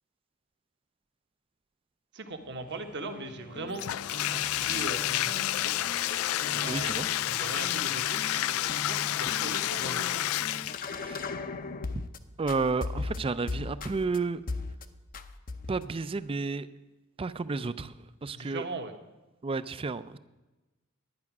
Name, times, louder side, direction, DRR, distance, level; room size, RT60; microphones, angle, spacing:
voice 1, 2.1-3.9 4.1-5.7 6.6-7.0 7.3-10.1 18.3-18.9, right 2 dB, 55° right, 6 dB, 1.2 m, -40 dB
sound 1, 2.4-12.2 12.5-14.2 14.5-14.8 15.1-15.9, left 3 dB, 40° left, 0.7 m, -39 dB
Bathtub (filling or washing), 3.8-11.0, left 14 dB, 70° left, 0.3 m, -30 dB
voice 2, 6.5-7.1 11.0-11.3 11.9-12.0 12.4-14.4 15.7-16.7 17.2-17.9 18.2-18.6 19.4-20.2, right 4 dB, 25° right, 15 dB, 0.4 m, -31 dB
11.0 x 9.8 x 5.9 m, 1.1 s
head